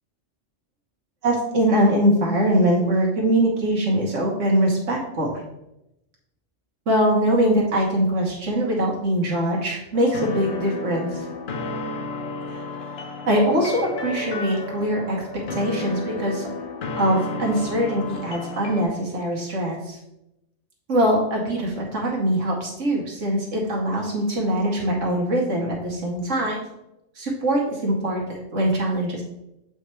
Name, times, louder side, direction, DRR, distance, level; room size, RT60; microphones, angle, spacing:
voice 1, 1.2-5.3 6.9-11.2 12.5-12.6 13.3-15.2 15.5-16.5 17.0-20.0 20.9-26.6 27.1-29.2, right 1 dB, 80° right, -2 dB, 1.5 m, -22 dB
sound 1, 9.9-18.8, left 2 dB, 60° left, 1.0 m, -32 dB
7.1 x 4.5 x 3.1 m, 0.87 s
omnidirectional pair, 1.3 m